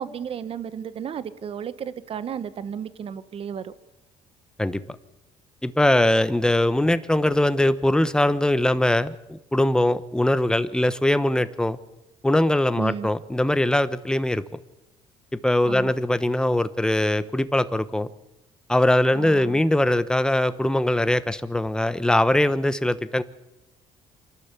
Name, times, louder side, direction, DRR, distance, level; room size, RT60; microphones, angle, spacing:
voice 1, 0.0-3.7 12.8-13.1 15.6-15.9 19.1-19.6, right 8 dB, 50° right, 14 dB, 1.2 m, -33 dB
voice 2, 5.6-11.8 12.2-14.4 15.3-18.1 18.7-23.2, left 1 dB, 5° left, 13 dB, 1.0 m, -21 dB
26.5 x 12.0 x 8.4 m, 0.95 s
cardioid pair, 95°, 13 cm